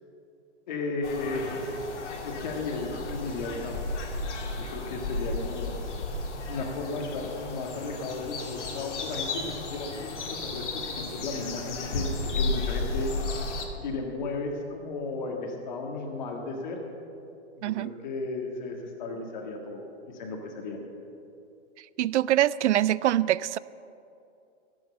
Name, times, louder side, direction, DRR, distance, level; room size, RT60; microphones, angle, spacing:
voice 1, 0.7-1.8 2.2-3.8 4.6-6.0 6.5-13.2 13.8-16.8 17.6-20.8, left 3 dB, 40° left, 1 dB, 1.8 m, -34 dB
sound 1, 1.0-13.7, left 2 dB, 85° left, 2.4 m, -34 dB
voice 2, 22.0-23.6, right 13 dB, 80° right, 20 dB, 0.5 m, -24 dB
16.0 x 7.7 x 7.0 m, 2.6 s
hypercardioid pair, 175°, 35 cm